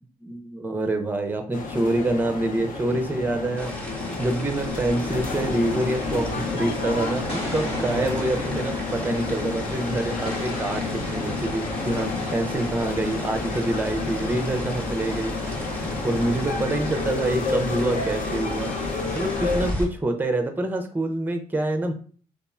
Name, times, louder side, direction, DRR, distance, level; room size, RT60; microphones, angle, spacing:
voice 1, 0.2-15.5 15.8-18.8 19.1-21.9, right 2 dB, 10° right, 5 dB, 0.5 m, -26 dB
sound 1, 1.5-19.7, left 4 dB, 60° left, 0.6 m, -30 dB
sound 2, 3.6-19.9, equal, 10° left, 1.0 m, -36 dB
Explosion, 7.3-9.7 10.2-12.8, equal, 40° left, 1.0 m, -37 dB
2.9 x 2.4 x 2.3 m, 0.43 s
supercardioid pair, 50°, 16 cm